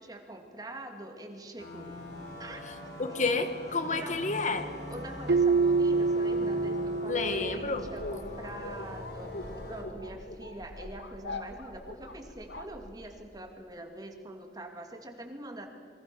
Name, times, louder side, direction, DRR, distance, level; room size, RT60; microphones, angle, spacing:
voice 1, 0.0-2.0 2.4-3.3 3.9-4.2 4.9-15.7, right 1 dB, 20° right, 4 dB, 2.4 m, -44 dB
sound 1, 1.6-9.8, left 1 dB, 60° left, 4.7 m, -42 dB
voice 2, 3.0-4.7 7.1-7.9, left 3 dB, 45° left, 9 dB, 1.3 m, -30 dB
Keyboard (musical), 5.3-8.1, right 4 dB, 65° right, 0.6 m, -27 dB
sound 2, 7.2-13.4, left 2 dB, 85° left, 2.2 m, -43 dB
27.5 x 24.0 x 6.1 m, 2.2 s
head